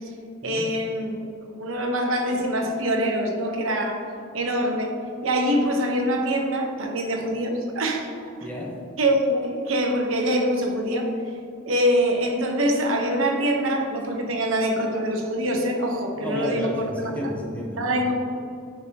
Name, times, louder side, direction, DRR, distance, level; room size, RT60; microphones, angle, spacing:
voice 1, 0.4-1.2 1.5-4.0 4.3-4.9 5.2-8.1 9.0-11.1 11.7-16.7 17.8-18.1, equal, 70° right, 2 dB, 1.0 m, -24 dB
voice 2, 8.4-8.8 16.2-18.1, left 1 dB, 5° left, -2 dB, 1.0 m, -31 dB
10.0 x 5.2 x 2.9 m, 2.5 s
head